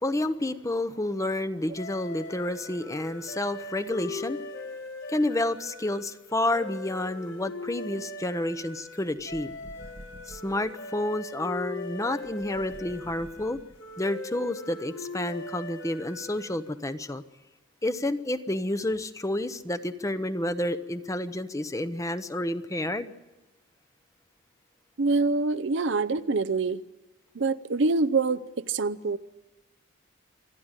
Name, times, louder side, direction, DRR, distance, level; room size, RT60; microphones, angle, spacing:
voice 1, 0.0-4.4 5.1-9.5 10.3-13.6 14.0-17.2 17.8-23.1, left 1 dB, 15° left, 11 dB, 0.8 m, -30 dB
sound 1, 1.7-16.8, left 2 dB, 70° left, 2.9 m, -40 dB
sound 2, 9.1-10.7 12.2-14.1, right 1 dB, 35° right, 1.0 m, -49 dB
voice 2, 25.0-26.8 27.3-29.2, right 3 dB, 60° right, 14 dB, 0.6 m, -25 dB
27.5 x 11.5 x 8.9 m, 1.1 s
head